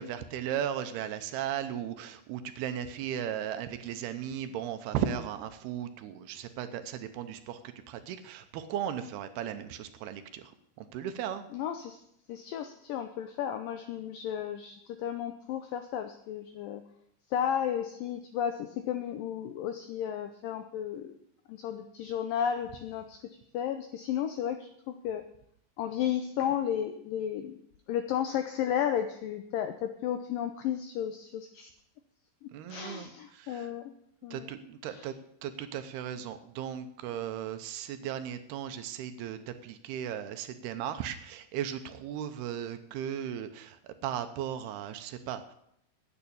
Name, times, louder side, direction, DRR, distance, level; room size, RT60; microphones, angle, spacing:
voice 1, 0.0-7.6 7.9-11.5 32.5-33.7 34.3-35.1 35.4-45.5, right 9 dB, 75° right, 9 dB, 2.6 m, -36 dB
voice 2, 11.5-12.0 12.3-16.8 17.3-21.1 21.5-25.3 25.8-27.6 27.9-31.7 32.4-33.9 34.2-34.5 34.9-35.1, left 9 dB, 85° left, 8 dB, 2.0 m, -33 dB
9.8 x 9.2 x 8.5 m, 0.73 s
omnidirectional pair, 4.9 m